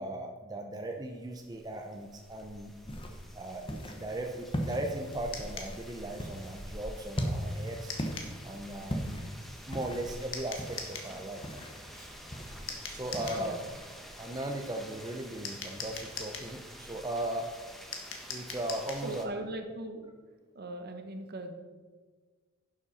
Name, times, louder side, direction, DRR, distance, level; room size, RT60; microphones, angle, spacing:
voice 1, 0.0-2.7 3.3-8.0 8.4-9.2 9.7-11.4 11.9-12.1 12.9-13.6 14.2-17.5 18.3-19.3, right 1 dB, 20° right, 3 dB, 0.7 m, -37 dB
sound 1, 1.1-19.3, equal, ahead, 1.1 m, -48 dB
sound 2, 2.9-13.8, equal, 25° left, 1.0 m, -40 dB
sound 3, 5.3-5.7 7.9-8.3 10.3-11.1 12.7-13.4 15.4-16.5 17.9-19.1, left 5 dB, 70° left, 1.5 m, -41 dB
voice 2, 19.0-20.1 20.5-21.5, right 1 dB, 55° right, 6 dB, 1.2 m, -39 dB
11.0 x 7.4 x 4.2 m, 1.4 s
head